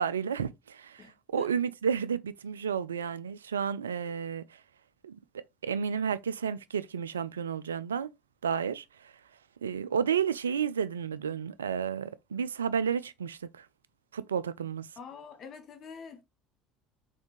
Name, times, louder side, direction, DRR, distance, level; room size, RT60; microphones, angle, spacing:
voice 1, 0.0-1.0 1.3-4.4 5.0-5.2 5.6-8.1 8.4-8.8 9.6-13.7 14.1-14.9, right 7 dB, 85° right, 0.3 m, -31 dB
voice 2, 1.0-1.5 15.0-16.2, left 5 dB, 45° left, 1.0 m, -46 dB
4.2 x 3.4 x 3.1 m
hypercardioid pair, 65°, 0 cm